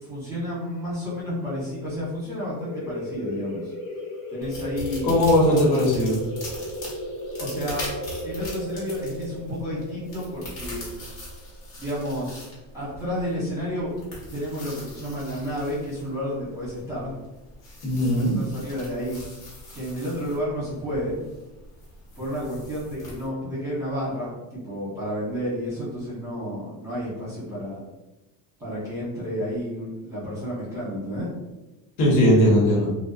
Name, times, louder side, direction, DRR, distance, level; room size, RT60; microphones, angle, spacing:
voice 1, 0.0-3.7 4.3-5.1 7.4-7.9 8.2-10.8 11.8-12.4 12.7-13.9 14.3-17.2 18.3-19.2 19.7-21.2 22.2-27.8 28.6-31.3, equal, 5° right, -9 dB, 0.8 m, -31 dB
sound 1, 2.6-11.9, left 1 dB, 45° left, 0.6 m, -35 dB
sound 2, 4.4-23.3, left 1 dB, 60° left, 1.2 m, -41 dB
voice 2, 5.0-6.2 17.8-18.4 32.0-32.9, equal, 85° left, -4 dB, 1.2 m, -19 dB
2.6 x 2.1 x 2.3 m, 1.1 s
cardioid pair, 155°, 46 cm